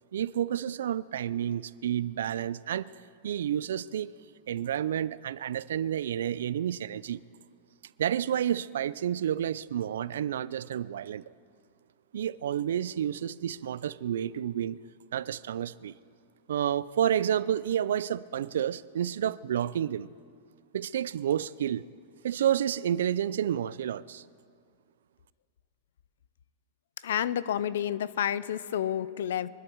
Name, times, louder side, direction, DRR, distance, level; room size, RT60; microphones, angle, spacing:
voice 1, 0.0-2.9 3.2-4.1 4.5-7.2 8.0-11.2 12.1-14.8 15.1-15.9 16.5-20.1 20.7-21.9 22.2-24.2, right 10 dB, 80° right, 0.4 m, -30 dB
voice 2, 27.0-29.5, left 10 dB, 75° left, 0.6 m, -30 dB
24.0 x 12.0 x 4.6 m
hypercardioid pair, 130°, 0 cm